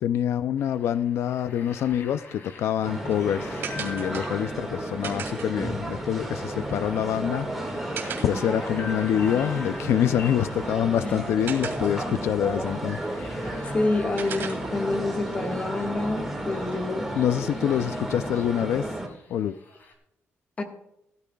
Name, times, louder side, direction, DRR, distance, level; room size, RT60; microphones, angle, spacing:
voice 1, 0.0-7.9 8.2-13.0 17.2-19.0 19.3-19.6, left 10 dB, 80° left, 0.4 m, -26 dB
sound 1, 0.6-19.9, left 3 dB, 50° left, 2.6 m, -46 dB
sound 2, 2.5-17.1, right 6 dB, 55° right, 2.4 m, -43 dB
sound 3, 2.8-19.1, right 1 dB, ahead, 1.9 m, -33 dB
voice 2, 13.6-17.1 20.6-20.7, left 2 dB, 30° left, 1.5 m, -28 dB
16.0 x 13.0 x 2.3 m
wide cardioid pair, 170°, 4 cm